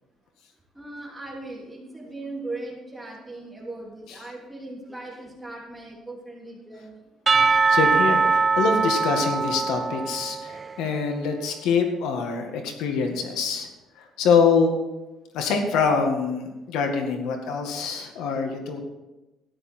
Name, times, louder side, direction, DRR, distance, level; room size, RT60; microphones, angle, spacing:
voice 1, 0.7-7.0, right 2 dB, 5° right, -4 dB, 3.0 m, -38 dB
Percussion / Church bell, 7.3-10.9, right 4 dB, 25° right, 0.5 m, -22 dB
voice 2, 7.7-13.7 14.0-14.7 15.3-18.8, left 5 dB, 85° left, 4 dB, 1.9 m, -24 dB
13.5 x 10.5 x 4.5 m, 1.0 s
cardioid pair, 165°, 0 cm